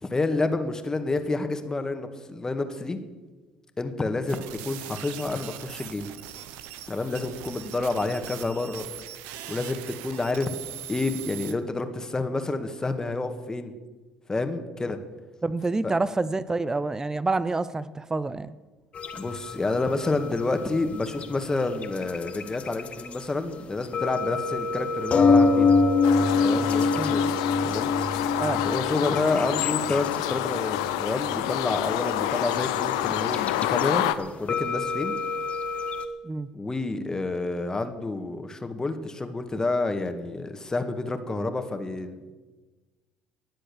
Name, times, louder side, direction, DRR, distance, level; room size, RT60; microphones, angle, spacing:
voice 1, 0.0-3.0 3.8-6.1 6.9-8.9 9.5-10.5 10.9-13.7 14.3-15.0 15.8-15.9 19.2-25.7 26.4-27.3 27.6-27.9 28.6-35.2 36.5-42.3, left 3 dB, 20° left, 7 dB, 1.8 m, -29 dB
sound 1, 4.3-11.5, right 11 dB, 75° right, 0.9 m, -41 dB
voice 2, 15.4-18.5 27.0-27.2 28.4-28.6 36.2-36.5, right 3 dB, 20° right, 16 dB, 0.7 m, -27 dB
sound 2, 18.9-23.3 23.5-23.6 23.8-33.9 34.2-36.1, left 4 dB, 45° left, 1.6 m, -27 dB
sound 3, 26.0-34.1, left 13 dB, 85° left, 0.7 m, -28 dB
20.5 x 7.7 x 7.0 m, 1.3 s
hypercardioid pair, 65°, 3 cm